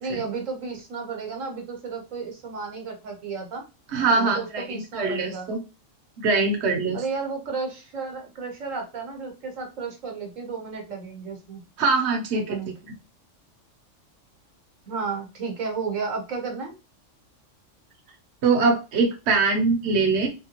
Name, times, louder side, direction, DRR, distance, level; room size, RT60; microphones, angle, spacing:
voice 1, 0.0-3.6 4.1-5.5 6.9-11.6 12.3-12.7 14.9-16.7, right 4 dB, 80° right, 2 dB, 1.3 m, -33 dB
voice 2, 3.9-5.6 6.2-7.0 11.8-12.4 18.4-20.3, right 4 dB, 60° right, 2 dB, 1.0 m, -22 dB
3.4 x 2.2 x 2.9 m, 0.28 s
omnidirectional pair, 1.3 m